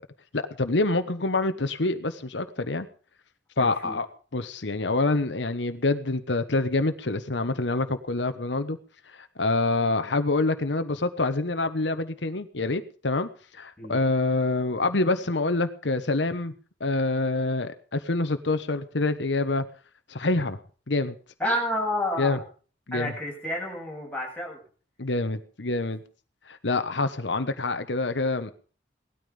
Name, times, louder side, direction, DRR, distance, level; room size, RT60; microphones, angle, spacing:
voice 1, 0.3-2.9 3.6-4.1 4.3-8.8 9.1-16.5 16.8-19.7 20.1-20.6 20.9-21.1 22.2-22.4 22.9-23.1 25.0-26.0 26.5-28.5, left 2 dB, 85° left, 9 dB, 1.2 m, -26 dB
voice 2, 3.6-4.0 13.8-14.0 21.4-22.4 22.9-24.6, left 1 dB, 10° left, -2 dB, 7.6 m, -30 dB
18.5 x 13.0 x 5.3 m, 0.40 s
head